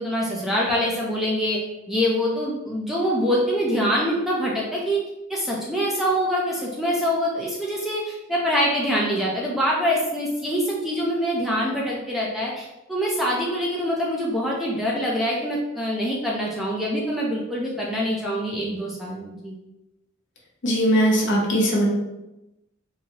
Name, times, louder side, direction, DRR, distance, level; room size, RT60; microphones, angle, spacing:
voice 1, 0.0-1.6 1.9-5.0 5.3-19.5, equal, ahead, -4 dB, 0.5 m, -25 dB
voice 2, 20.6-21.9, equal, 60° left, -3 dB, 1.0 m, -20 dB
4.1 x 2.7 x 2.8 m, 0.95 s
head